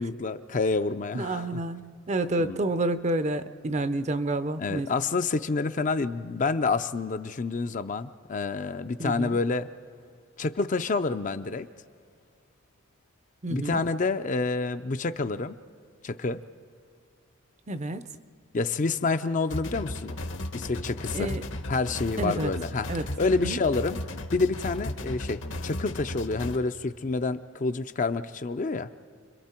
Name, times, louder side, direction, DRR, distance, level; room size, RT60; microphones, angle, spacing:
voice 1, 0.0-1.5 2.4-2.6 4.6-9.7 10.4-11.7 13.5-15.6 16.0-16.4 18.5-20.2 20.5-21.3 21.7-22.9 23.2-24.0 24.3-28.9, left 3 dB, 40° left, 10 dB, 0.5 m, -28 dB
voice 2, 1.1-4.9 9.0-9.4 13.4-13.8 17.7-18.1 21.1-21.4 22.2-22.5 22.9-23.1 23.4-23.6, right 2 dB, 35° right, 11 dB, 0.6 m, -29 dB
sound 1, 19.5-26.6, left 1 dB, 65° left, 1.1 m, -35 dB
30.0 x 22.5 x 4.4 m, 2.2 s
head